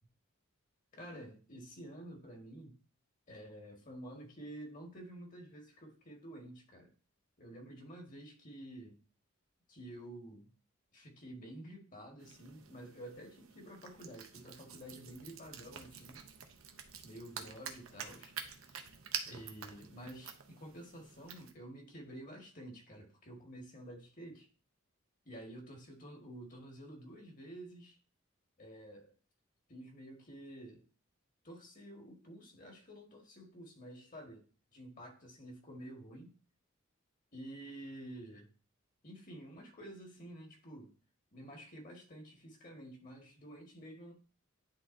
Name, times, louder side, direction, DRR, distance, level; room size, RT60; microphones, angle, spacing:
voice 1, 0.9-2.8 3.3-6.9 7.4-8.9 9.7-10.5 10.9-16.2 17.0-18.9 19.3-24.5 25.2-28.0 28.6-29.1 29.7-30.9 31.4-34.4 34.7-36.4 37.3-38.5 39.0-40.9 41.3-44.1, right 1 dB, 40° left, 1.6 m, -50 dB
sound 1, 12.2-21.5, right 7 dB, 75° right, 0.8 m, -48 dB
10.0 x 3.8 x 2.6 m
head